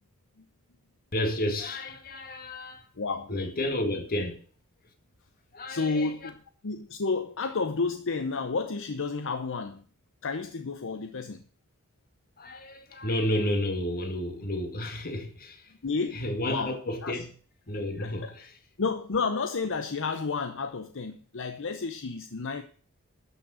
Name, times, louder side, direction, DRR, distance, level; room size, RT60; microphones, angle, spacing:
voice 1, 1.1-2.9 3.3-4.4 5.5-6.3 12.4-15.7 16.1-17.3 17.7-18.5, left 1 dB, 40° left, 2.1 m, -31 dB
voice 2, 3.0-3.3 4.2-4.3 5.7-6.4 6.6-9.8 10.2-11.4 15.8-17.2 18.0-18.3 18.8-22.6, left 4 dB, 60° left, 0.8 m, -31 dB
12.5 x 6.3 x 6.4 m
head